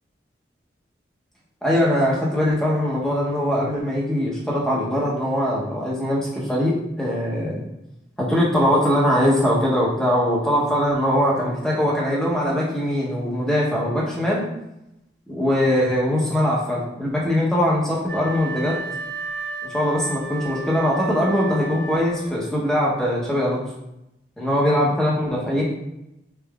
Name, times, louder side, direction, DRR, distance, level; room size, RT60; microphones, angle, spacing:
voice 1, 1.6-7.6 8.3-14.4 15.3-18.7 19.7-23.6 24.4-25.6, equal, 5° left, -5 dB, 0.8 m, -21 dB
Wind instrument woodwind instrument, 18.0-22.5, right 2 dB, 75° right, 0.8 m, -33 dB
3.9 x 3.5 x 2.3 m, 0.89 s
head